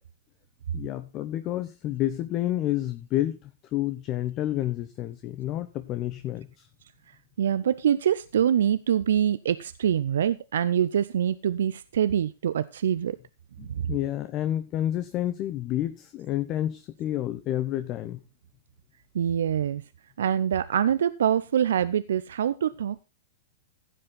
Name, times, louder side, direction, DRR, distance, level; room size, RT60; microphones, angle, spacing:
voice 1, 0.7-6.7 13.6-18.2, left 13 dB, 35° left, 11 dB, 0.9 m, -29 dB
voice 2, 7.4-13.2 13.7-13.9 19.1-19.8 20.2-23.0, right 9 dB, 65° right, 15 dB, 0.5 m, -25 dB
15.5 x 7.7 x 4.0 m, 0.28 s
figure-of-eight pair, 100°, 0 cm